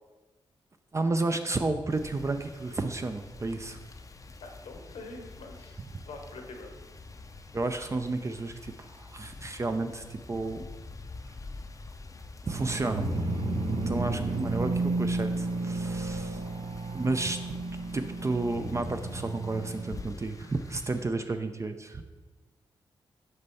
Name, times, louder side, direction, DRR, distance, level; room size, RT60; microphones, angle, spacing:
voice 1, 0.9-3.8 7.5-10.6 12.4-13.3 13.7-16.4 16.9-17.4 17.9-22.0, right 3 dB, 30° right, 7 dB, 0.4 m, -32 dB
sound 1, 1.9-21.0, left 3 dB, 35° left, 0.5 m, -47 dB
voice 2, 4.4-6.7 13.8-14.0 16.4-16.6, left 3 dB, 85° left, 3 dB, 1.0 m, -45 dB
sound 2, 12.5-20.1, right 2 dB, 60° right, 0.7 m, -32 dB
6.6 x 4.4 x 4.1 m, 1.3 s
cardioid pair, 65°, 10 cm